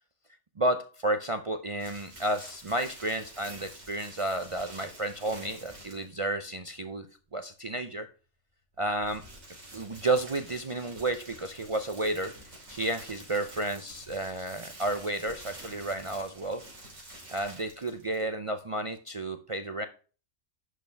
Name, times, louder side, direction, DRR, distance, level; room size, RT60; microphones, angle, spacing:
voice 1, 0.6-7.1 7.3-8.1 8.8-9.2 9.7-12.4 12.7-16.7 17.3-19.8, right 1 dB, 45° right, 7 dB, 0.4 m, -31 dB
sound 1, 1.8-6.3 8.7-18.3, right 1 dB, 80° right, 3.5 m, -48 dB
11.0 x 4.5 x 3.4 m, 0.35 s
omnidirectional pair, 1.3 m